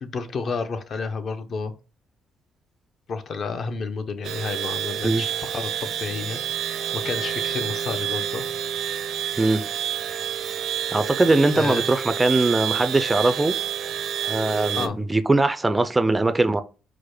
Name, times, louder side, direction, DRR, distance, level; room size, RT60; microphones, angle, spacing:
voice 1, 0.0-1.7 3.1-8.5 11.5-11.9 14.7-15.0, left 4 dB, 50° left, 0.6 m, -31 dB
sound 1, 4.2-14.9, right 9 dB, 70° right, 0.5 m, -29 dB
voice 2, 10.9-13.5 14.2-16.6, right 2 dB, 15° right, 0.3 m, -21 dB
4.8 x 2.1 x 4.7 m
cardioid pair, 120°, 0 cm